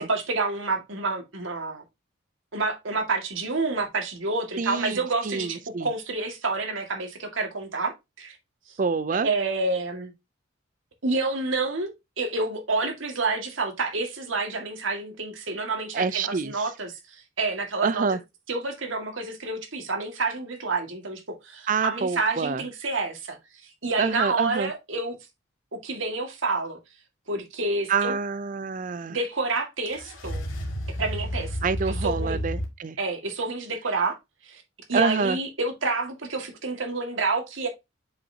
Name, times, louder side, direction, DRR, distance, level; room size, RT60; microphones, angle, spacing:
voice 1, 0.0-1.8 2.5-7.9 8.2-8.4 8.7-8.8 9.2-10.1 11.0-18.1 18.5-23.4 23.6-25.2 25.8-26.8 27.3-28.2 29.1-30.4 31.0-32.4 33.0-34.2 34.4-34.6 34.9-37.7, right 3 dB, 75° right, 2.0 m, -29 dB
voice 2, 4.6-5.9 8.8-9.3 15.9-16.5 17.8-18.2 21.7-22.6 24.0-24.7 27.9-29.2 31.6-33.0 34.9-35.4, right 5 dB, 40° right, 0.4 m, -26 dB
sound 1, 29.9-32.6, equal, 75° left, 2.0 m, -31 dB
7.1 x 5.5 x 2.8 m
head